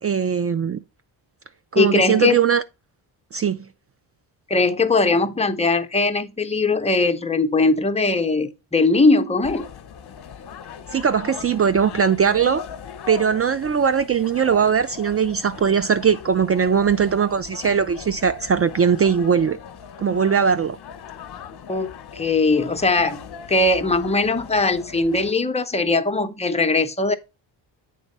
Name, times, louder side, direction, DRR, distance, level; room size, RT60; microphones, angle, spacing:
voice 1, 0.0-0.8 1.7-2.6 3.3-3.7 10.9-12.6 13.1-19.6 20.0-20.8, right 7 dB, 35° right, 0.4 m, -20 dB
voice 2, 1.7-2.3 4.5-9.6 21.7-23.2 23.5-27.1, left 3 dB, 15° left, 0.8 m, -20 dB
sound 1, 9.4-25.3, left 7 dB, 55° left, 1.0 m, -39 dB
8.1 x 3.7 x 5.3 m
cardioid pair, 85°, 47 cm